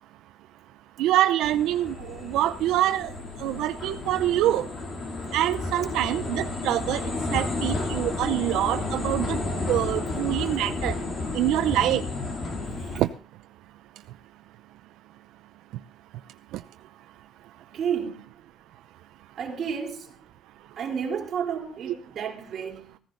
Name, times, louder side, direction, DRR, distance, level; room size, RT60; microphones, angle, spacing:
voice 1, 1.0-3.1 3.4-4.7 5.3-7.0 7.3-9.4 9.7-11.0 11.3-12.0 13.0-13.1 21.9-22.0, right 13 dB, 85° right, 0.7 m, -25 dB
sound 1, 1.4-13.0, left 3 dB, 35° left, 3.1 m, -32 dB
voice 2, 17.7-18.4 19.4-20.2 20.8-23.0, right 7 dB, 40° right, 3.6 m, -31 dB
16.0 x 15.0 x 4.0 m
cardioid pair, 165°, 0 cm